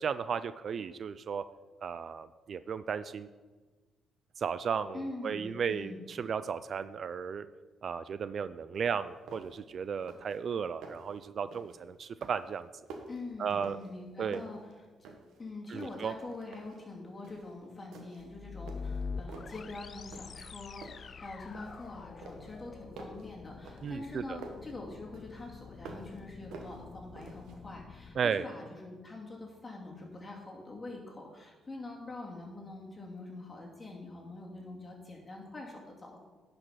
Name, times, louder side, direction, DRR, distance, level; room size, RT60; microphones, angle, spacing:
voice 1, 0.0-1.4 1.8-3.3 4.4-7.5 7.8-12.7 13.4-13.8 14.2-14.4 15.7-16.1 23.8-24.4 28.2-28.4, right 6 dB, 55° right, 14 dB, 0.3 m, -34 dB
voice 2, 4.9-6.0 13.1-14.8 15.4-36.2, left 2 dB, 25° left, -1 dB, 2.6 m, -44 dB
sound 1, 8.8-8.9 9.3-9.7 9.9-10.4 10.6-11.1 11.5-11.8 12.2-14.0 14.3-15.4 15.7-16.8 17.2-17.5 17.9-18.3 18.7-19.6 20.1-20.5 20.8-21.9 22.2-24.7 25.1-26.2 26.5-27.6, right 3 dB, 80° right, 1.4 m, -49 dB
sound 2, 18.2-28.2, left 5 dB, 45° left, 0.3 m, -45 dB
10.5 x 5.2 x 5.7 m, 1.3 s
cardioid pair, 90°, 0 cm